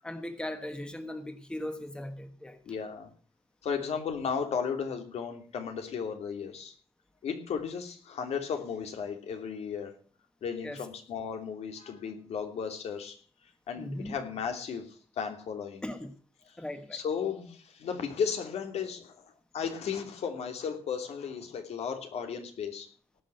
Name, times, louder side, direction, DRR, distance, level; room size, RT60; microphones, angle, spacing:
voice 1, 0.0-2.6 10.6-10.8 13.8-14.1 15.8-16.1 16.6-17.0, left 1 dB, 10° left, 8 dB, 1.3 m, -38 dB
voice 2, 2.6-3.1 3.6-6.7 7.2-10.0 10.4-13.2 13.7-15.8 16.5-16.6 16.9-22.9, left 6 dB, 85° left, 5 dB, 2.9 m, -35 dB
18.5 x 6.2 x 7.8 m, 0.43 s
wide cardioid pair, 160°, 11 cm